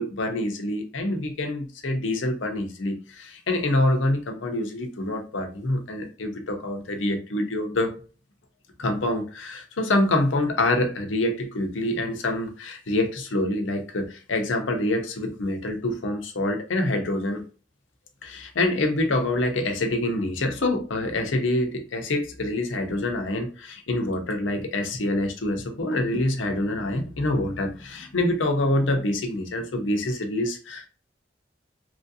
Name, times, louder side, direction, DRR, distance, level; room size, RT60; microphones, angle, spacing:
voice 1, 0.0-7.9 8.8-17.4 18.2-30.9, left 1 dB, 90° left, 4 dB, 0.7 m, -26 dB
3.0 x 2.6 x 2.7 m, 0.36 s
head